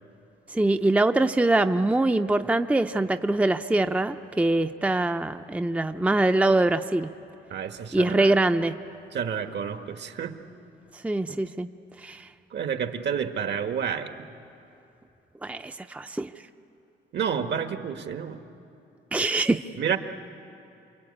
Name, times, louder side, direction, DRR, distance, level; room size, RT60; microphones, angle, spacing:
voice 1, 0.5-7.1 7.9-8.7 11.0-11.7 12.0-12.3 15.4-16.3 19.1-19.6, right 2 dB, 5° right, 9 dB, 0.6 m, -23 dB
voice 2, 7.5-8.3 9.1-10.3 12.5-14.1 17.1-18.4 19.8-20.0, right 7 dB, 60° right, 7 dB, 1.5 m, -29 dB
28.0 x 22.0 x 8.8 m, 2.8 s
cardioid pair, 90°, 20 cm